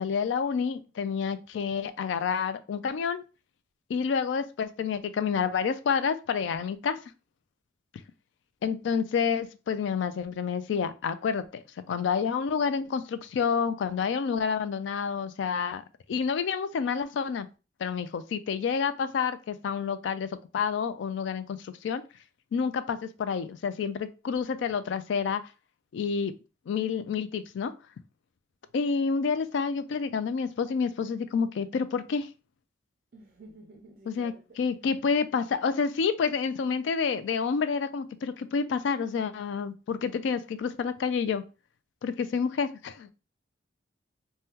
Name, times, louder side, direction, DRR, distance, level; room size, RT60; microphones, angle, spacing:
voice 1, 0.0-3.2 3.9-7.0 8.6-15.8 16.1-17.5 17.8-22.0 22.5-25.4 25.9-26.3 26.7-27.7 28.7-32.3 34.1-41.4 42.0-43.1, left 6 dB, 70° left, 0.3 m, -29 dB
voice 2, 33.1-34.4, right 1 dB, 45° right, 0.4 m, -51 dB
3.5 x 2.2 x 2.8 m
head